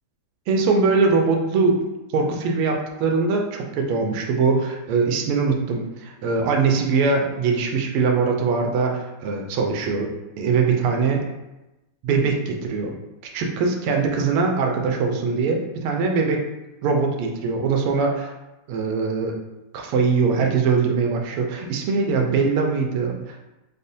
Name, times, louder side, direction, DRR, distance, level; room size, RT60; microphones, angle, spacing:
voice 1, 0.5-1.8 2.1-3.5 3.7-11.2 12.0-12.9 13.3-16.4 16.8-18.3 18.7-19.3 19.7-23.4, right 4 dB, 85° right, 2 dB, 1.5 m, -22 dB
5.0 x 2.0 x 2.6 m, 1.0 s
omnidirectional pair, 2.4 m